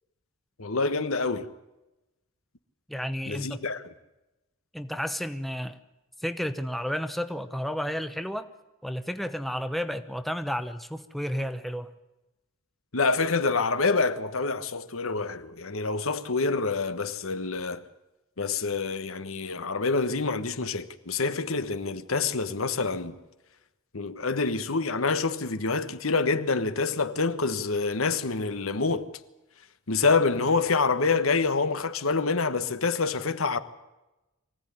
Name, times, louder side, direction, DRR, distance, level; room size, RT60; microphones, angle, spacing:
voice 1, 0.6-1.5 3.3-3.8 12.9-17.8 18.4-23.2 23.9-29.1 29.9-33.6, left 4 dB, 75° left, 1.4 m, -27 dB
voice 2, 2.9-3.6 4.7-5.8 6.2-8.5 8.8-11.9, equal, ahead, 0.9 m, -32 dB
23.5 x 16.5 x 9.9 m
head